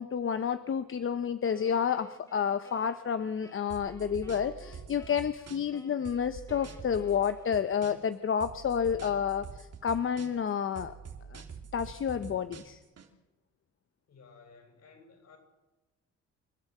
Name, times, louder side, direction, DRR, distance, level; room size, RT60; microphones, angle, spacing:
voice 1, 0.0-10.9 11.3-11.4 11.7-12.8, left 7 dB, 45° left, 11 dB, 0.9 m, -30 dB
Wind instrument woodwind instrument, 1.5-8.3, left 2 dB, 10° left, 3.7 m, -55 dB
sound 1, 3.7-5.8 6.0-8.1 8.4-10.5 10.7-13.1, right 6 dB, 55° right, 2.9 m, -46 dB
voice 2, 14.1-15.4, left 4 dB, 60° left, 4 dB, 7.1 m, -56 dB
28.0 x 11.5 x 7.9 m, 1.1 s
cardioid pair, 90°, 30 cm